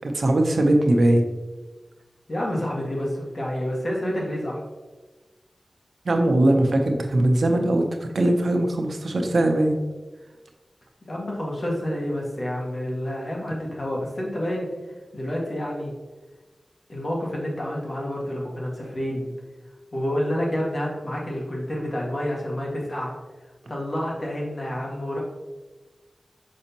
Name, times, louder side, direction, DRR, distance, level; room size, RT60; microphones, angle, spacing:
voice 1, 0.0-1.2 6.0-7.9 8.1-9.7, right 1 dB, 85° right, 3 dB, 0.8 m, -20 dB
voice 2, 2.3-4.6 11.1-15.9 16.9-19.2 19.9-23.1 23.7-25.2, equal, 50° left, -3 dB, 1.8 m, -29 dB
6.3 x 5.4 x 2.9 m, 1.2 s
wide cardioid pair, 65°, 0 cm